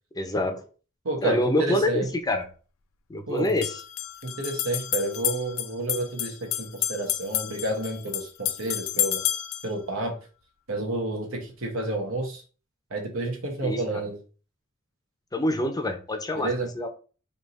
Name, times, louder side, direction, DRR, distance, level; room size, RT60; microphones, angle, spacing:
voice 1, 0.2-0.6 1.2-2.4 3.1-3.8 13.6-13.8 15.3-16.5 16.8-16.9, left 1 dB, 20° left, 6 dB, 0.6 m, -26 dB
voice 2, 1.0-2.1 3.3-3.6 4.2-9.3 9.6-10.2 10.7-12.4 12.9-14.2 16.3-16.7, right 2 dB, 85° right, 2 dB, 1.2 m, -30 dB
sound 1, 1.8-1.9 3.4-9.7, left 12 dB, 80° left, 0.5 m, -30 dB
3.5 x 2.8 x 4.1 m, 0.37 s
head